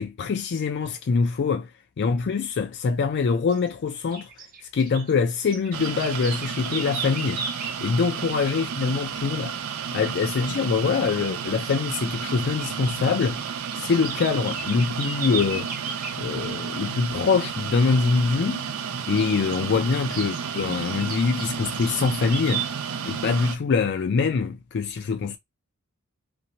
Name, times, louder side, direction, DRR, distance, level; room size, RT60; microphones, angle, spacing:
voice 1, 0.0-1.7 2.0-4.3 4.7-7.4 7.8-9.6 9.9-13.4 13.7-15.7 16.2-18.6 19.1-22.7 23.0-25.4, left 5 dB, 55° left, 0.4 m, -24 dB
sound 1, 3.5-3.7 4.1-7.8 10.4-10.7 10.9-11.1 11.5-12.9 13.2-16.2 19.2-19.6 20.1-22.7, right 5 dB, 45° right, 0.9 m, -36 dB
sound 2, 5.7-23.6, right 7 dB, 75° right, 0.4 m, -32 dB
2.6 x 2.2 x 2.8 m
head